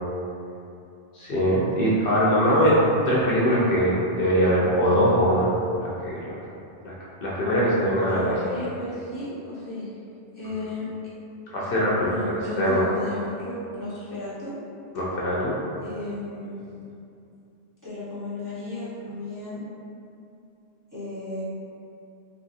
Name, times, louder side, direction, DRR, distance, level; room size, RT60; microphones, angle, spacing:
voice 1, 1.1-2.8 3.0-5.5 5.8-6.3 6.8-6.9 7.2-8.3 11.5-12.1 12.6-12.8 14.9-15.6, equal, 65° left, -6 dB, 0.7 m, -22 dB
voice 2, 8.1-9.9 10.3-10.9 12.0-14.6 15.8-16.6 17.8-19.7 20.9-21.4, left 2 dB, 20° right, -13 dB, 0.6 m, -34 dB
2.8 x 2.6 x 2.4 m, 2.7 s
omnidirectional pair, 1.1 m